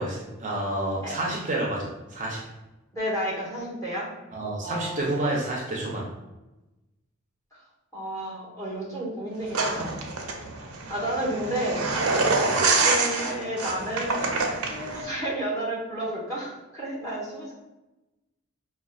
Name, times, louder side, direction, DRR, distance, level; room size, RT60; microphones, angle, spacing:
voice 1, 0.0-2.4 4.3-6.1 12.4-12.7, right 1 dB, 35° right, -3 dB, 0.5 m, -29 dB
voice 2, 2.9-4.1 4.6-5.0 7.9-10.1 10.9-11.9 12.8-14.3 14.6-17.5, right 1 dB, 15° left, -7 dB, 1.1 m, -31 dB
sound 1, 9.5-15.0, right 3 dB, 85° right, 0.5 m, -26 dB
5.1 x 2.2 x 2.3 m, 1.0 s
head